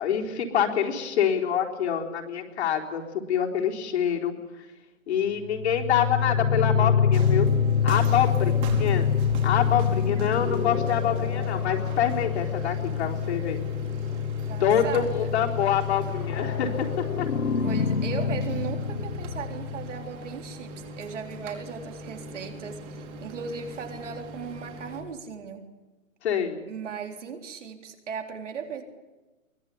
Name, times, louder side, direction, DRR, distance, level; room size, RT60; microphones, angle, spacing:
voice 1, 0.0-3.0 3.3-4.3 5.1-7.5 7.8-9.1 9.4-13.6 14.6-17.3 26.2-26.6, left 8 dB, 55° left, 1 dB, 4.1 m, -26 dB
sound 1, 5.4-20.0, left 7 dB, 85° left, 2.0 m, -26 dB
sound 2, 7.1-25.0, right 1 dB, 25° right, 3.9 m, -40 dB
voice 2, 14.5-15.3 17.6-25.6 26.7-28.8, right 6 dB, 60° right, 4 dB, 3.9 m, -37 dB
23.5 x 21.0 x 8.6 m, 1.2 s
hypercardioid pair, 140°, 40 cm